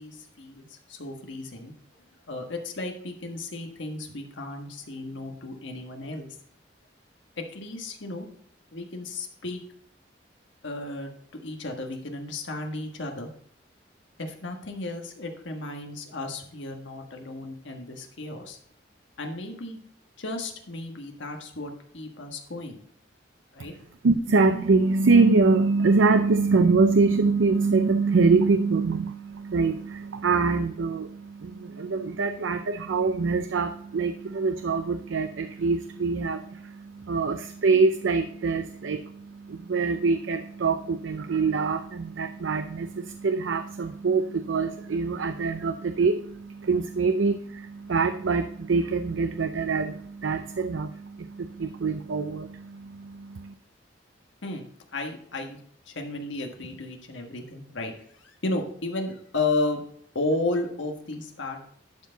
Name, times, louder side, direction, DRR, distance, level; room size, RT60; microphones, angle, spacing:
voice 1, 0.0-1.7 2.3-6.4 7.4-8.3 8.7-9.6 10.6-11.1 11.4-13.3 14.2-18.6 19.2-19.8 20.2-22.8 23.5-23.7 54.4-54.7 54.9-55.6 55.9-57.9 58.2-59.8 60.1-61.6, left 2 dB, 80° left, 3 dB, 1.5 m, -33 dB
voice 2, 24.0-53.5, right 4 dB, 85° right, 9 dB, 0.5 m, -24 dB
11.5 x 4.7 x 4.0 m, 0.62 s
head